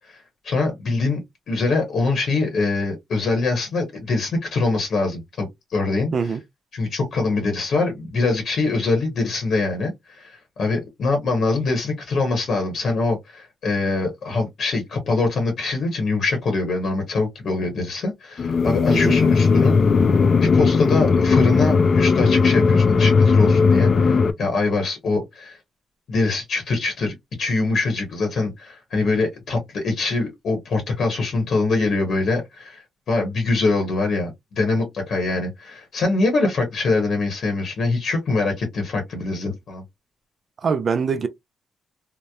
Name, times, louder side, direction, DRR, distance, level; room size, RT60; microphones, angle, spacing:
voice 1, 0.1-6.1 6.7-19.8 20.4-25.6 26.1-39.8, left 3 dB, 65° left, 0.8 m, -23 dB
sound 1, 18.4-24.3, left 5 dB, 45° left, 0.3 m, -17 dB
voice 2, 40.6-41.3, right 5 dB, 50° right, 0.3 m, -23 dB
2.8 x 2.0 x 2.2 m
cardioid pair, 105°, 0 cm